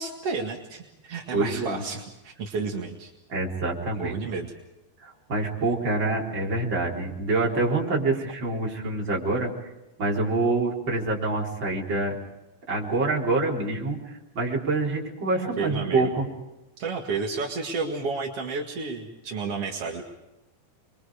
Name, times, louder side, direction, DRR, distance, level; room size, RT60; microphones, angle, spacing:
voice 1, 0.0-3.1 3.9-4.5 15.4-16.1 16.8-20.0, right 4 dB, 50° right, 0 dB, 1.8 m, -31 dB
voice 2, 1.3-1.8 3.3-4.1 5.0-9.5 10.0-12.2 12.7-16.3, right 2 dB, 25° right, -3 dB, 4.1 m, -26 dB
29.0 x 23.0 x 5.0 m, 0.96 s
omnidirectional pair, 5.6 m